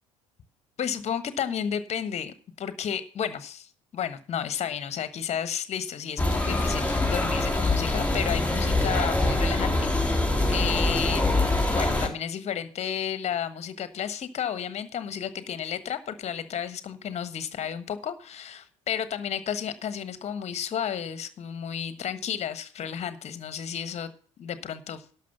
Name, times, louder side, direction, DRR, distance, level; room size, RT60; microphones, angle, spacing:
voice 1, 0.8-11.4 11.7-24.1 24.4-25.0, left 8 dB, 40° left, 12 dB, 1.3 m, -32 dB
sound 1, 6.2-12.1, left 2 dB, 10° left, 3.6 m, -24 dB
11.5 x 6.4 x 7.1 m, 0.44 s
figure-of-eight pair, 55°, 17 cm